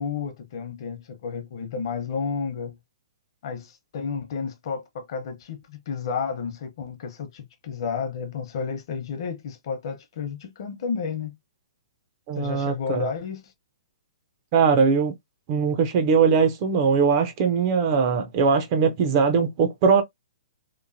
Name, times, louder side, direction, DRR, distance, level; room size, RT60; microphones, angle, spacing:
voice 1, 0.0-2.8 3.4-11.4 12.3-13.5, left 6 dB, 50° left, 0.8 m, -31 dB
voice 2, 12.3-13.1 14.5-15.1 15.5-20.0, right 5 dB, 35° right, 0.4 m, -21 dB
3.0 x 2.1 x 2.6 m
hypercardioid pair, 155°, 3 cm